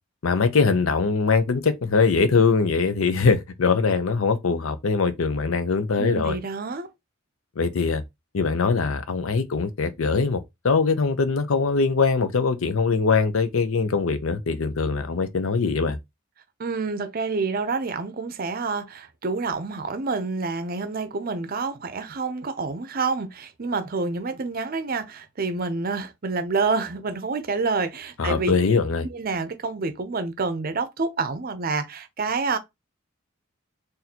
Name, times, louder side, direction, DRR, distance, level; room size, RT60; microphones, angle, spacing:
voice 1, 0.2-6.4 7.6-8.0 8.3-16.0 28.2-29.1, left 4 dB, 80° left, 0.6 m, -22 dB
voice 2, 6.0-6.9 16.6-28.6 29.1-32.6, right 4 dB, 45° right, 0.6 m, -28 dB
4.1 x 2.6 x 2.8 m
head